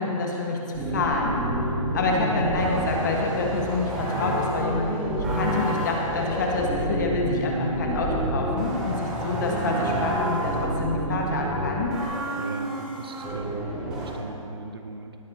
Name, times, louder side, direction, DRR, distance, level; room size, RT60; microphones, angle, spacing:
voice 1, 0.0-1.3 1.9-11.9, left 3 dB, 35° left, -1 dB, 1.5 m, -27 dB
sound 1, 0.7-14.1, right 1 dB, 5° right, 0.5 m, -28 dB
voice 2, 2.2-2.6 9.8-9.9 10.4-10.5 12.4-13.5 13.8-15.2, right 4 dB, 45° right, 6 dB, 0.8 m, -38 dB
18.5 x 10.5 x 2.8 m, 3.0 s
hypercardioid pair, 175°, 18 cm